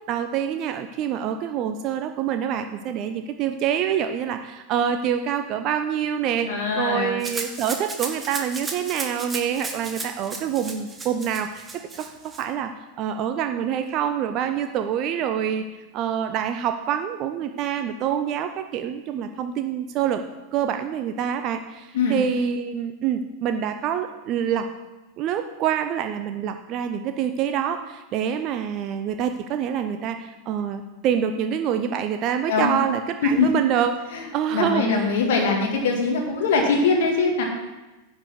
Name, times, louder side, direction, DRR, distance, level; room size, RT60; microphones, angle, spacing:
voice 1, 0.1-11.7 12.0-12.1 12.4-15.7 15.9-20.2 20.5-24.7 25.2-33.9 34.3-35.1, right 9 dB, 35° right, 7 dB, 0.6 m, -26 dB
voice 2, 6.4-7.2 21.9-22.2 32.5-32.7 33.4-33.5 34.1-34.2 34.5-37.4, left 4 dB, 55° left, 0 dB, 1.9 m, -22 dB
Rattle (instrument), 7.2-12.4, right 3 dB, 15° right, 1.3 m, -34 dB
10.0 x 5.4 x 6.5 m, 1.1 s
figure-of-eight pair, 90°, 0 cm